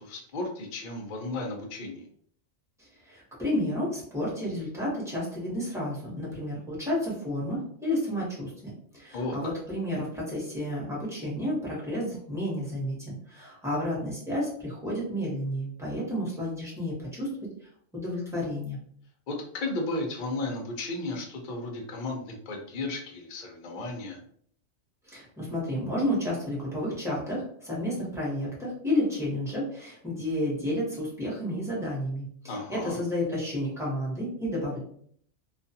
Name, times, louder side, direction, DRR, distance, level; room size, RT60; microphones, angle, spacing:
voice 1, 0.0-2.1 9.1-9.3 19.3-24.2 32.5-33.0, left 2 dB, 55° left, 2 dB, 0.5 m, -34 dB
voice 2, 2.8-17.3 17.9-18.8 25.0-34.8, left 1 dB, 5° right, -6 dB, 0.8 m, -31 dB
2.3 x 2.3 x 2.6 m, 0.62 s
omnidirectional pair, 1.4 m